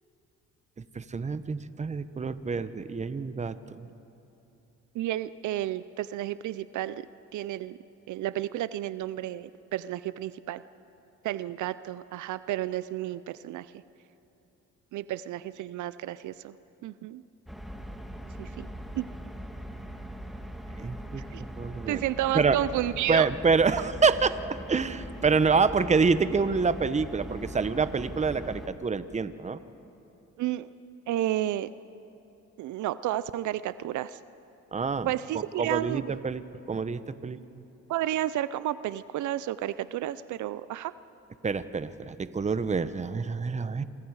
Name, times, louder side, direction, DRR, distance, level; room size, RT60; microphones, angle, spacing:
voice 1, 0.9-3.9 20.8-21.2 21.6-22.0 22.3-22.6 23.1-29.6 34.7-36.4 36.7-37.4 41.4-43.8, right 5 dB, 25° right, 13 dB, 0.8 m, -27 dB
voice 2, 4.9-7.1 7.3-7.8 8.1-10.6 11.2-13.7 14.9-16.6 16.8-17.2 18.4-18.7 19.0-19.1 21.3-21.4 21.9-23.3 30.4-30.7 31.1-31.7 32.6-34.2 35.0-36.2 37.9-40.9, right 13 dB, 75° right, 16 dB, 0.6 m, -31 dB
sound 1, 17.5-28.7, equal, ahead, 1.7 m, -41 dB
27.5 x 24.0 x 4.8 m, 2.9 s
cardioid pair, 90°, 30 cm